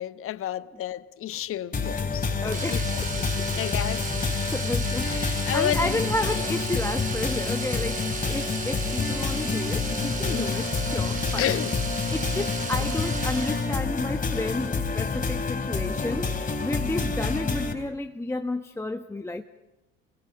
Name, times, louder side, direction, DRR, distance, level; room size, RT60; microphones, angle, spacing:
voice 1, 0.0-3.1 3.5-4.0 5.0-6.0 6.7-6.8 10.2-10.6 11.4-11.8 12.8-12.9, left 11 dB, 45° left, 1.1 m, -31 dB
sound 1, 1.7-17.7, left 4 dB, 30° left, 2.8 m, -28 dB
voice 2, 2.4-3.1 4.4-11.6 12.1-19.4, left 2 dB, 10° left, 1.1 m, -32 dB
Domestic sounds home sounds, 2.5-13.8 15.9-16.0 16.3-16.4, right 4 dB, 25° right, 4.2 m, -35 dB
29.0 x 21.5 x 5.8 m
hypercardioid pair, 65°, 30 cm